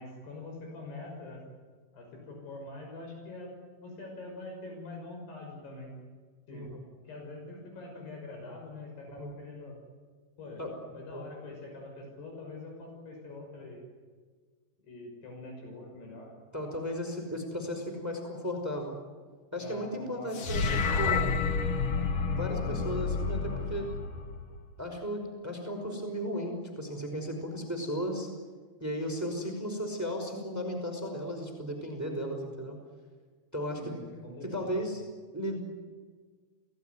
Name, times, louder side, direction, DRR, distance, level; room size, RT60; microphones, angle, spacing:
voice 1, 0.0-1.4 1.9-3.5 3.8-5.9 6.5-6.7 7.0-9.8 10.4-10.6 10.9-13.8 14.8-16.3 19.6-21.3 33.7-34.7, left 2 dB, 80° left, 1 dB, 8.1 m, -44 dB
voice 2, 6.5-6.8 9.2-9.3 10.6-10.7 11.1-11.3 16.5-18.9 19.5-20.7 21.0-21.2 22.3-23.9 24.8-28.3 28.8-32.8 33.5-33.8 34.4-35.0 35.3-35.6, equal, 5° right, 3 dB, 4.8 m, -35 dB
sound 1, 20.3-24.7, left 4 dB, 65° left, 1.3 m, -30 dB
28.5 x 19.0 x 9.5 m, 1.5 s
omnidirectional pair, 4.6 m